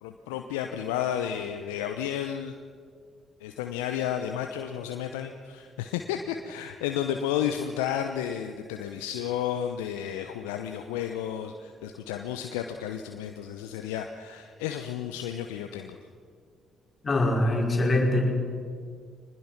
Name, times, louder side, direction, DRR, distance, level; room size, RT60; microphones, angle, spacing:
voice 1, 0.0-2.5 3.4-16.0, left 9 dB, 80° left, 6 dB, 0.9 m, -32 dB
voice 2, 17.0-18.3, left 1 dB, 35° left, 0 dB, 5.2 m, -23 dB
23.5 x 20.0 x 6.0 m, 2.1 s
hypercardioid pair, 50°, 0 cm